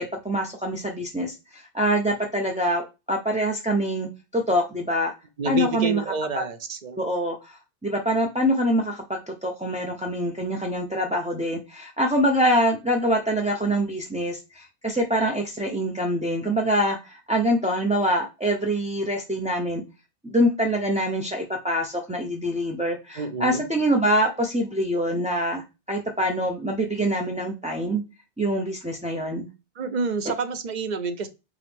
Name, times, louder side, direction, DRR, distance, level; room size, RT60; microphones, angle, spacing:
voice 1, 0.0-5.1 5.4-6.0 6.3-6.4 7.0-19.8 20.2-28.0 28.4-29.5, equal, 10° right, -1 dB, 0.3 m, -25 dB
voice 2, 5.4-7.0 23.2-23.6 29.8-31.3, right 4 dB, 50° right, 10 dB, 0.6 m, -28 dB
4.8 x 3.0 x 3.4 m, 0.27 s
omnidirectional pair, 1.0 m